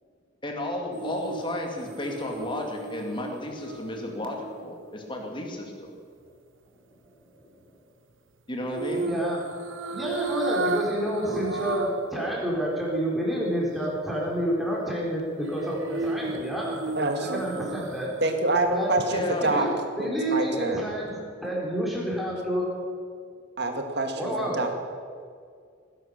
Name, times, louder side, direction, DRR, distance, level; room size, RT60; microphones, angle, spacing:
voice 1, 0.4-5.9 8.5-9.1 19.1-19.4, left 1 dB, 25° left, 1 dB, 2.3 m, -33 dB
sound 1, 0.9-5.2 8.7-12.1 12.5-12.6 15.4-18.3 18.7-18.8, right 3 dB, 85° right, 1.0 m, -34 dB
voice 2, 9.0-9.4 9.9-16.8 17.2-18.1 18.7-18.9 19.5-19.7 20.0-22.7 24.2-24.6, equal, ahead, -5 dB, 4.5 m, -29 dB
voice 3, 17.0-17.4 18.2-19.7 20.0-20.8 23.6-24.7, right 2 dB, 60° right, 4 dB, 2.1 m, -26 dB
19.0 x 11.0 x 6.7 m, 2.1 s
head